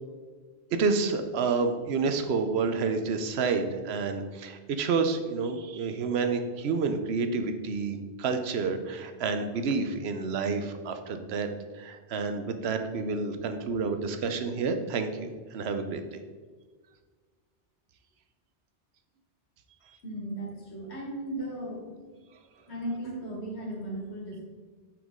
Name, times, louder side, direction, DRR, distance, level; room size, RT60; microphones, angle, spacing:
voice 1, 0.7-11.5 11.7-16.2, right 4 dB, 75° right, 7 dB, 0.9 m, -29 dB
voice 2, 20.0-21.9 22.7-24.4, right 1 dB, 75° left, -2 dB, 1.9 m, -36 dB
5.9 x 5.6 x 3.6 m, 1.5 s
omnidirectional pair, 1.1 m